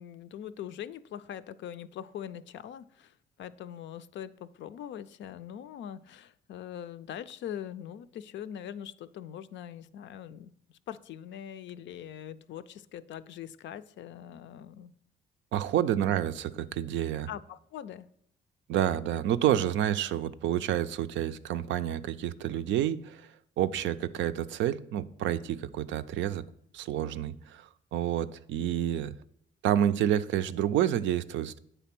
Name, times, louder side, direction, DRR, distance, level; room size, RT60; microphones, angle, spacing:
voice 1, 0.0-14.9 15.9-16.2 17.3-18.1, left 10 dB, 70° left, 13 dB, 0.4 m, -42 dB
voice 2, 15.5-17.3 18.7-23.3 23.6-26.4 26.7-29.1 29.6-31.6, right 11 dB, 75° right, 13 dB, 0.4 m, -29 dB
8.3 x 3.3 x 5.9 m, 0.71 s
supercardioid pair, 65°, 20 cm